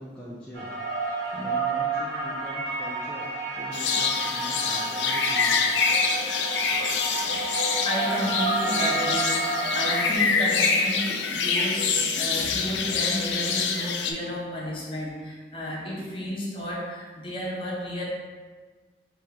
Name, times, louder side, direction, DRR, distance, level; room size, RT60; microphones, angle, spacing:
voice 1, 0.0-3.3 3.5-5.6, equal, 5° left, -8 dB, 0.5 m, -42 dB
sound 1, 0.5-10.1, right 3 dB, 75° right, 1.4 m, -30 dB
sound 2, 3.7-14.1, left 5 dB, 90° left, 0.5 m, -26 dB
voice 2, 6.7-9.4 9.7-18.0, equal, 30° left, -4 dB, 0.9 m, -32 dB
3.6 x 2.9 x 4.7 m, 1.4 s
head